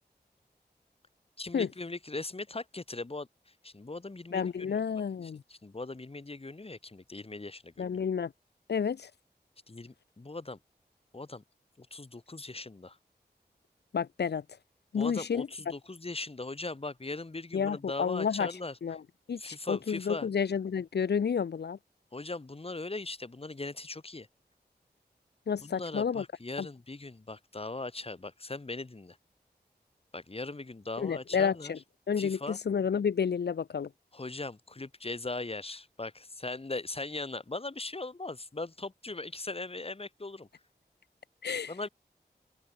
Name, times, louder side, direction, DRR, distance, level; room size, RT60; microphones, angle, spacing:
voice 1, 1.4-4.8 5.2-7.8 9.7-10.6 11.1-11.4 11.8-13.0 15.0-18.8 19.4-20.3 22.1-24.3 25.6-29.2 30.1-31.7 32.2-32.6 34.1-40.5 41.7-41.9, left 2 dB, 35° left, 1.4 m, -39 dB
voice 2, 4.3-5.4 7.8-8.3 8.7-9.1 13.9-14.4 14.9-15.5 17.5-18.5 18.8-19.0 19.3-21.8 25.5-26.2 26.6-26.7 31.0-31.8 32.1-33.9 41.4-41.7, left 6 dB, 75° left, 0.6 m, -30 dB
cardioid pair, 50°, 18 cm